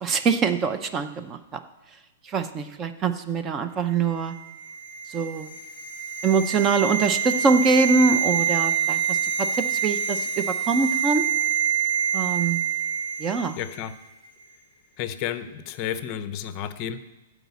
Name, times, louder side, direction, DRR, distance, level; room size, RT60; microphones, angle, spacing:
voice 1, 0.0-1.6 2.2-4.4 5.1-5.5 6.2-11.3 12.1-12.6 13.2-13.6, right 4 dB, 20° right, 10 dB, 0.6 m, -24 dB
sound 1, 4.3-13.5 13.8-13.9, right 7 dB, 55° right, 3.3 m, -26 dB
voice 2, 13.6-13.9 15.0-17.0, left 10 dB, 30° left, 12 dB, 0.6 m, -31 dB
12.0 x 5.0 x 8.2 m, 1.1 s
hypercardioid pair, 165°, 0 cm